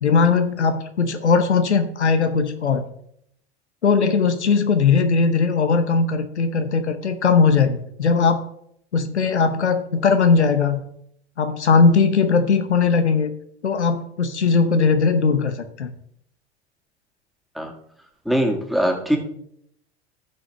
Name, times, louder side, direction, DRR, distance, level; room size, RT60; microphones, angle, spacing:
voice 1, 0.0-2.8 3.8-8.4 8.9-10.8 11.4-13.3 13.6-15.9, left 5 dB, 85° left, 9 dB, 0.9 m, -19 dB
voice 2, 18.3-19.2, equal, ahead, 1 dB, 2.2 m, -21 dB
15.5 x 6.2 x 3.4 m, 0.71 s
figure-of-eight pair, 80°, 33 cm